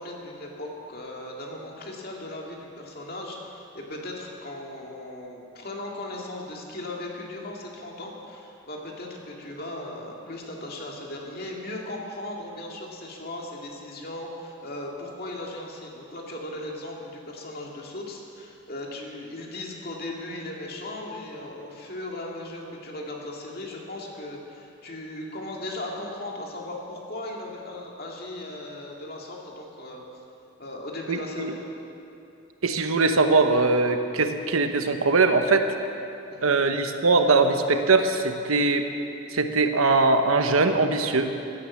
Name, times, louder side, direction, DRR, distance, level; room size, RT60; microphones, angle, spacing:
voice 1, 0.0-30.0 30.6-31.6 36.3-36.5, left 1 dB, 45° left, -1 dB, 2.2 m, -37 dB
voice 2, 31.1-31.5 32.6-35.6 36.4-38.8 39.3-41.3, right 3 dB, 85° right, 7 dB, 1.0 m, -21 dB
16.5 x 9.7 x 7.2 m, 2.7 s
head